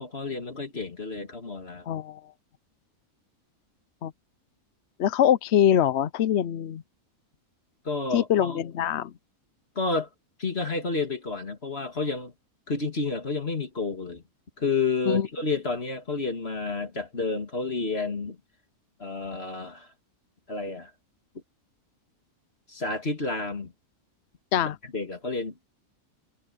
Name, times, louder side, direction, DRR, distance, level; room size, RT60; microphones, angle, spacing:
voice 1, 0.0-1.9 7.8-8.6 9.8-10.1 10.4-12.3 12.7-14.2 14.6-18.4 19.0-19.9 20.5-20.9 22.7-23.7 24.8-25.6, left 3 dB, 40° left, 2.8 m, -30 dB
voice 2, 1.9-2.2 4.0-4.1 5.0-6.8 8.1-9.1 15.1-15.3 24.5-24.8, left 10 dB, 60° left, 0.7 m, -23 dB
omnidirectional pair, 1.6 m